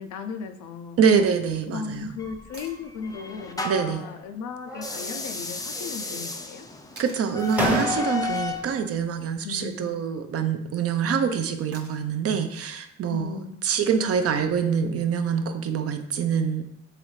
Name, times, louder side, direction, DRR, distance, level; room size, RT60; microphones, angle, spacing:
voice 1, 0.0-1.0 1.7-6.7 9.4-9.9 13.1-13.6, left 6 dB, 80° left, 8 dB, 0.5 m, -36 dB
voice 2, 1.0-2.1 3.6-4.0 7.0-13.3 13.6-16.6, right 6 dB, 50° right, 7 dB, 0.5 m, -25 dB
sound 1, 2.2-4.0 4.7-8.7, left 4 dB, 10° left, 0.4 m, -33 dB
sound 2, 2.5-2.8 5.1-5.2 7.0-7.3 9.3-9.7 11.7-12.2 14.3-14.4, right 3 dB, 35° right, 0.9 m, -47 dB
sound 3, 3.7-4.3 4.7-5.4 5.7-6.5 7.1-7.2 7.5-8.5, equal, 5° right, 0.8 m, -31 dB
3.8 x 3.1 x 3.1 m, 0.76 s
cardioid pair, 90°, 30 cm